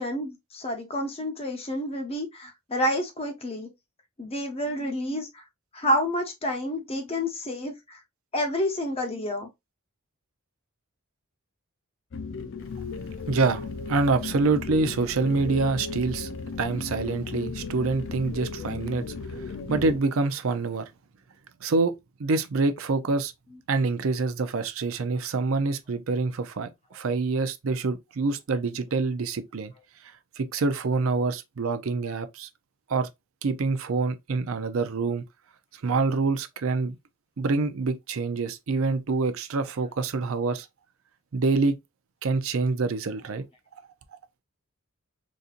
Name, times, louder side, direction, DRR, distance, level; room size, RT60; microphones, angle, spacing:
voice 1, 0.0-3.7 4.2-5.4 5.7-8.0 8.3-9.5, equal, 25° left, 0.8 m, -29 dB
sound 1, 12.1-20.0, left 4 dB, 55° left, 0.5 m, -35 dB
voice 2, 13.3-16.3 16.6-19.0 19.4-20.9 21.6-21.9 22.2-23.3 23.7-29.7 30.4-32.5 32.9-33.1 33.4-35.2 35.8-37.0 37.4-40.7 41.3-41.8 42.2-43.4, right 3 dB, 70° right, 0.5 m, -26 dB
4.1 x 2.6 x 2.5 m
head